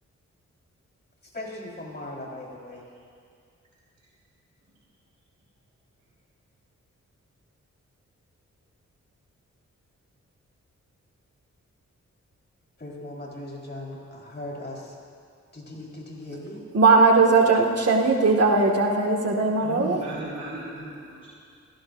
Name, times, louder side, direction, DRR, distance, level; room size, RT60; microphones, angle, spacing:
voice 1, 1.2-2.8 12.8-15.0 15.5-16.6, left 1 dB, 35° left, -3 dB, 4.3 m, -38 dB
voice 2, 16.7-20.0, right 3 dB, 55° right, 0 dB, 2.0 m, -19 dB
voice 3, 19.6-21.3, right 1 dB, 75° right, -10 dB, 5.0 m, -36 dB
29.0 x 16.0 x 2.7 m, 2.2 s
cardioid pair, 75°, 29 cm